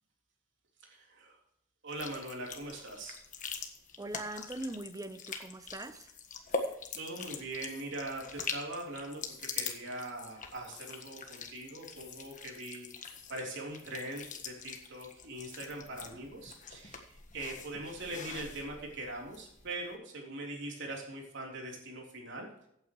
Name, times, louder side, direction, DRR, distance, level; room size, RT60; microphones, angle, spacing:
voice 1, 0.8-1.4 1.8-3.2 6.5-12.9 13.3-22.5, right 1 dB, 60° right, 3.5 m, -42 dB
sound 1, 1.9-19.8, left 5 dB, 40° left, 1.5 m, -43 dB
voice 2, 4.0-6.1, right 2 dB, 15° right, 0.7 m, -41 dB
sound 2, 6.5-6.8 7.6-7.9 9.2-9.5 10.7-11.1 12.0-12.3 13.0-13.4 14.2-14.5, left 8 dB, 55° left, 3.2 m, -55 dB
16.0 x 8.9 x 3.1 m
head